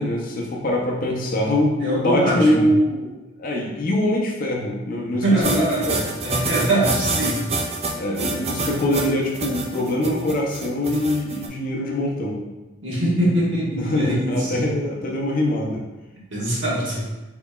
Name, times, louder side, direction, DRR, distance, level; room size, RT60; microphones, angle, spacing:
voice 1, 0.0-3.1 3.4-6.0 8.0-12.4 13.8-15.8, left 1 dB, 40° left, -2 dB, 0.5 m, -23 dB
voice 2, 1.8-2.6 5.1-5.8 6.2-7.5 12.8-14.7 16.3-17.0, right 1 dB, 60° right, -6 dB, 1.4 m, -22 dB
sound 1, 5.4-11.5, right 2 dB, 30° right, 0.4 m, -26 dB
3.9 x 3.9 x 2.3 m, 1.1 s
head